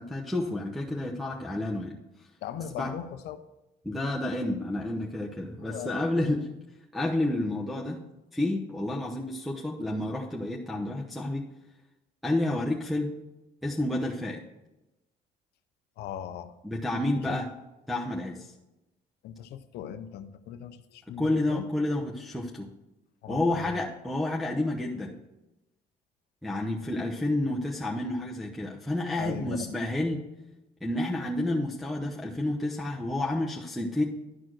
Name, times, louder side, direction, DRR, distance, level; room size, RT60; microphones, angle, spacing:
voice 1, 0.0-2.0 2.8-2.9 3.8-6.5 6.9-8.0 8.3-11.4 12.2-13.1 13.6-14.4 16.6-17.5 17.9-18.5 21.2-22.7 23.3-25.2 26.4-30.2 30.8-34.0, left 1 dB, ahead, -4 dB, 0.9 m, -30 dB
voice 2, 2.4-3.4 5.6-5.9 6.2-6.4 16.0-16.5 17.1-17.4 19.2-21.6 23.2-23.8 26.8-26.9 29.2-29.8, left 9 dB, 75° left, 9 dB, 0.6 m, -39 dB
11.5 x 4.4 x 6.1 m, 0.98 s
cardioid pair, 110°, 17 cm